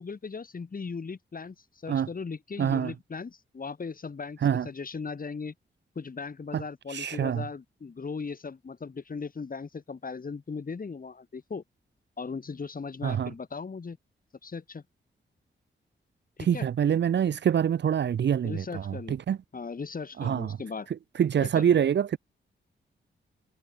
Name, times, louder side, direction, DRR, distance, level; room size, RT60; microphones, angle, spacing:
voice 1, 0.0-1.5 1.8-5.5 5.9-11.6 12.2-14.0 14.4-14.8 16.4-16.7 18.4-19.2 19.5-20.9 21.4-21.8, left 5 dB, 45° left, 6.3 m, -38 dB
voice 2, 2.6-2.9 4.4-4.7 6.5-6.6 6.9-7.4 13.0-13.3 16.5-19.4 20.2-20.5 21.2-22.2, right 8 dB, 65° right, 0.6 m, -25 dB
wide cardioid pair, 105°, 20 cm